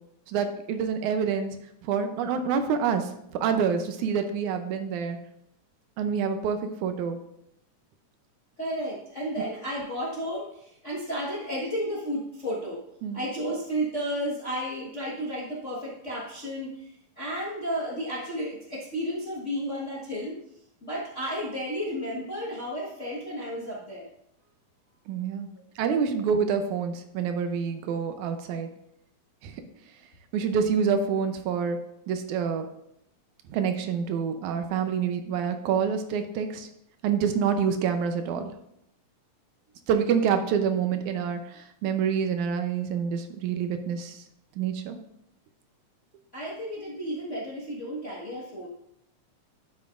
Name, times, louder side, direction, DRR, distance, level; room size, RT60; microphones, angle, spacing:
voice 1, 0.3-1.6 1.8-5.2 6.0-7.2 13.0-13.2 25.1-25.5 25.8-28.7 29.4-29.6 30.3-31.8 32.1-32.7 33.5-36.7 37.0-38.5 39.9-44.2 44.6-45.0, right 6 dB, 80° right, 7 dB, 2.1 m, -27 dB
voice 2, 8.6-12.8 13.1-16.9 17.2-20.3 20.8-24.1 46.3-48.7, equal, 45° left, -5 dB, 0.9 m, -32 dB
11.5 x 7.5 x 2.5 m, 0.78 s
omnidirectional pair, 3.5 m